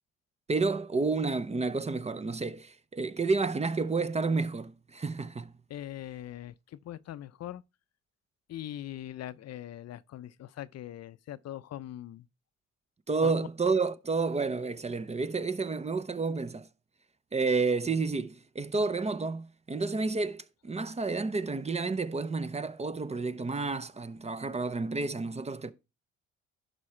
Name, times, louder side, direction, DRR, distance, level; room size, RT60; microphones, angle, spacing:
voice 1, 0.5-5.5 13.1-16.7 17.3-25.7, right 4 dB, 20° right, 0.6 m, -30 dB
voice 2, 5.7-7.6 8.5-12.3 13.2-13.5, left 12 dB, 55° left, 0.5 m, -41 dB
11.5 x 4.8 x 4.3 m
cardioid pair, 90°, 30 cm